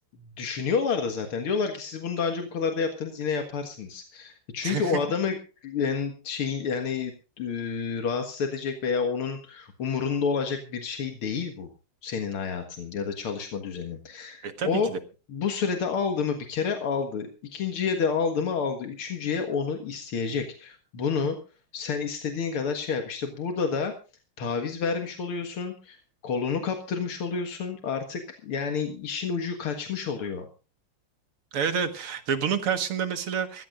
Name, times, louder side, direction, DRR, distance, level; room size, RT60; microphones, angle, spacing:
voice 1, 0.2-5.4 5.6-11.7 12.0-14.9 15.3-21.4 21.7-23.9 24.4-26.0 26.2-30.5, left 5 dB, 85° left, 5 dB, 2.5 m, -29 dB
voice 2, 4.6-5.0 14.4-15.0 31.5-33.7, right 7 dB, 90° right, 9 dB, 2.6 m, -28 dB
23.0 x 15.0 x 2.6 m, 0.34 s
omnidirectional pair, 2.4 m